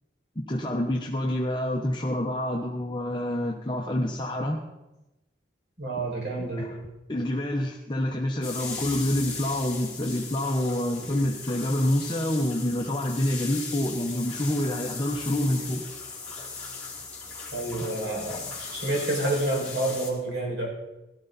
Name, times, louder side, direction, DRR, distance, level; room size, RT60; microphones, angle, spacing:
voice 1, 0.5-4.6 6.6-6.8 7.1-15.8 18.3-18.4 18.8-19.0, left 1 dB, 25° left, 0 dB, 1.0 m, -27 dB
voice 2, 5.8-6.7 17.5-20.7, right 2 dB, 80° right, -2 dB, 5.5 m, -29 dB
sound 1, 8.4-20.1, left 4 dB, 5° left, 3.5 m, -38 dB
17.5 x 12.5 x 4.1 m, 0.99 s
head